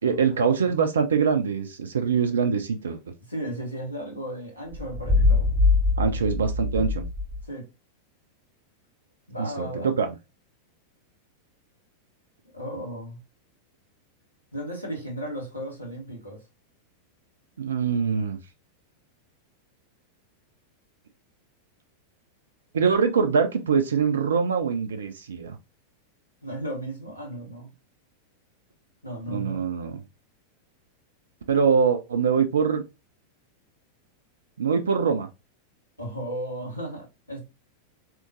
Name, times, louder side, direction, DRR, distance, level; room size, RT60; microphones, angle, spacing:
voice 1, 0.0-3.0 6.0-7.0 9.4-10.1 17.6-18.4 22.7-25.6 29.3-30.0 31.5-32.8 34.6-35.3, right 6 dB, 65° right, 0.4 m, -23 dB
voice 2, 3.3-5.5 7.5-7.6 9.3-10.0 12.5-13.2 14.5-16.4 26.4-27.7 29.0-29.6 36.0-37.4, right 1 dB, 85° left, 1.3 m, -35 dB
sound 1, 4.7-7.5, left 3 dB, 10° left, 2.0 m, -23 dB
3.7 x 2.9 x 2.5 m
figure-of-eight pair, 90°, 0 cm